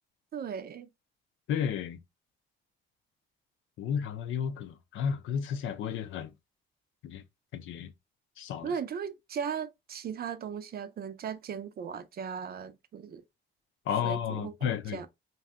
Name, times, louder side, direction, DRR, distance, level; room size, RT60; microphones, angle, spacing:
voice 1, 0.3-0.9 8.6-13.2 14.0-15.1, right 7 dB, 50° right, 0.5 m, -37 dB
voice 2, 1.5-2.0 3.8-6.3 7.0-7.2 7.5-7.9 8.4-8.7 13.9-15.1, left 8 dB, 75° left, 0.5 m, -32 dB
2.7 x 2.3 x 3.4 m
cardioid pair, 90°, 20 cm